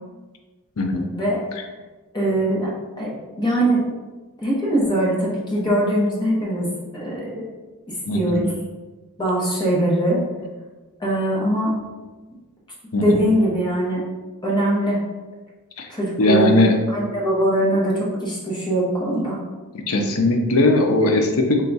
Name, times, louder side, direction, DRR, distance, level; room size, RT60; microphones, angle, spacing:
voice 1, 0.8-1.1 8.1-8.5 12.9-13.2 15.8-15.9 16.2-16.8 19.9-21.6, left 2 dB, 70° left, 4 dB, 0.5 m, -19 dB
voice 2, 2.1-2.7 3.0-3.8 4.4-6.7 6.9-7.5 7.9-8.5 9.2-10.2 11.0-11.8 13.0-14.0 14.4-15.0 15.9-16.5 16.9-19.4, right 1 dB, 20° left, -5 dB, 0.8 m, -21 dB
3.5 x 2.3 x 4.0 m, 1.3 s
head